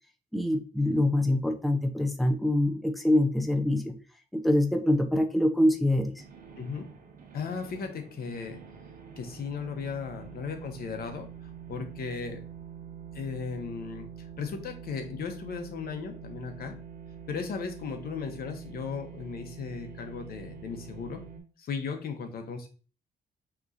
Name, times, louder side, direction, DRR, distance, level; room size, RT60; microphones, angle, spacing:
voice 1, 0.3-3.9 4.4-6.1, left 1 dB, ahead, 4 dB, 0.7 m, -25 dB
sound 1, 5.8-21.4, right 7 dB, 55° right, 1.1 m, -46 dB
voice 2, 6.6-6.9 7.3-8.6 9.2-12.4 13.1-14.1 14.4-16.7 17.3-21.2 21.6-22.7, left 5 dB, 70° left, 5 dB, 1.0 m, -36 dB
5.8 x 3.0 x 2.6 m, 0.37 s
cardioid pair, 80°, 17 cm